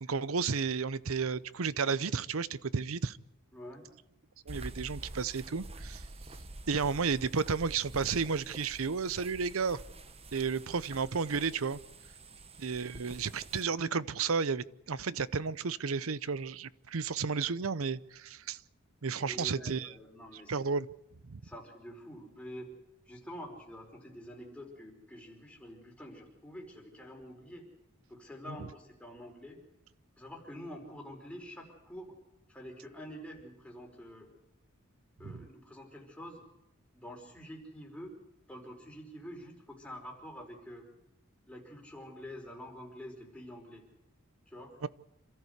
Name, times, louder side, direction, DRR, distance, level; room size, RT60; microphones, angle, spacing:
voice 1, 0.0-3.2 4.5-6.0 6.7-9.8 10.3-11.8 12.6-18.6 19.0-19.9 20.5-20.9 21.3-21.4 35.2-35.5 44.8-44.9, right 5 dB, 85° right, 0.7 m, -32 dB
voice 2, 3.5-3.8 19.2-20.7 21.4-22.7 23.1-27.6 28.1-29.6 30.2-32.2 32.5-34.3 35.2-36.4 36.9-38.2 38.5-40.9 41.5-43.8 44.5-44.8, equal, 5° left, 5.0 m, -47 dB
sound 1, 4.5-13.6, right 2 dB, 30° right, 1.2 m, -47 dB
27.0 x 14.0 x 8.1 m
head